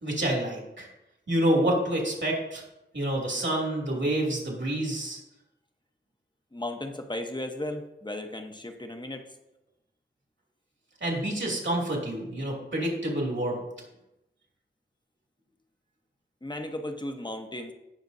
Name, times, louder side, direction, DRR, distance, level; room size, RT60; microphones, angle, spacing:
voice 1, 0.0-0.9 1.3-2.6 2.9-5.2 11.0-13.6, right 1 dB, 70° right, -3 dB, 2.7 m, -28 dB
voice 2, 6.5-9.3 16.4-17.7, left 1 dB, 20° left, 5 dB, 1.1 m, -35 dB
16.5 x 6.1 x 2.7 m, 0.91 s
wide cardioid pair, 65°, 20 cm